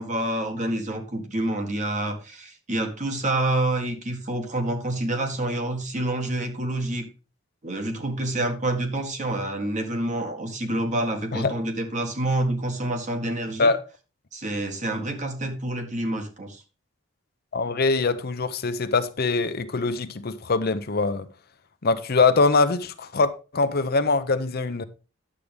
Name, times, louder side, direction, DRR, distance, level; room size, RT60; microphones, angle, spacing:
voice 1, 0.0-7.1 7.6-13.7 14.3-16.6, right 1 dB, 40° right, 1.7 m, -27 dB
voice 2, 17.5-21.3 21.8-24.8, left 3 dB, 50° left, 0.7 m, -23 dB
9.8 x 7.5 x 3.4 m
head